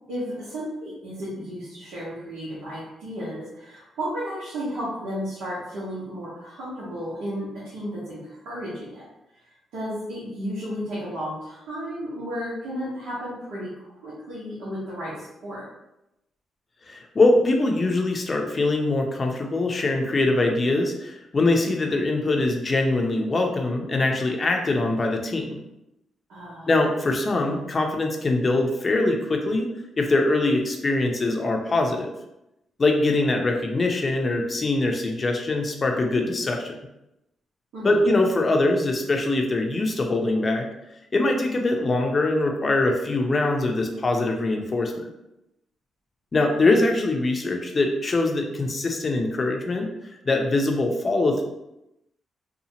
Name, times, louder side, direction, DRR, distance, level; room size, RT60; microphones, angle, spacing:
voice 1, 0.1-9.1 9.3-9.5 9.7-15.7 26.3-26.7 37.7-38.0 46.4-47.0, equal, 80° right, -8 dB, 1.0 m, -33 dB
voice 2, 16.9-25.6 26.7-29.7 30.0-32.1 32.8-36.7 37.8-40.7 41.1-45.1 46.3-49.9 50.2-51.4, left 2 dB, 40° left, 2 dB, 0.6 m, -23 dB
2.8 x 2.3 x 2.8 m, 0.89 s
supercardioid pair, 60°, 0 cm